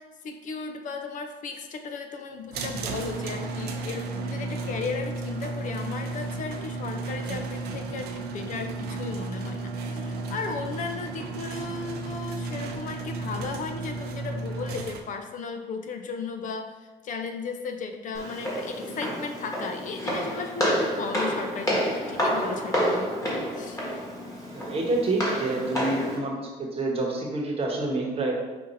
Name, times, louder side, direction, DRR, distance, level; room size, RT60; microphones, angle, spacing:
voice 1, 0.0-23.1 23.6-23.8, left 4 dB, 50° left, 6 dB, 0.4 m, -35 dB
sound 1, 2.5-15.0, right 3 dB, 75° right, 0.6 m, -33 dB
Walk footsteps, 18.1-26.2, equal, 20° left, 1.4 m, -29 dB
voice 2, 24.5-28.3, right 2 dB, 35° right, -1 dB, 1.0 m, -28 dB
5.3 x 2.6 x 3.9 m, 1.2 s
cardioid pair, 110°, 17 cm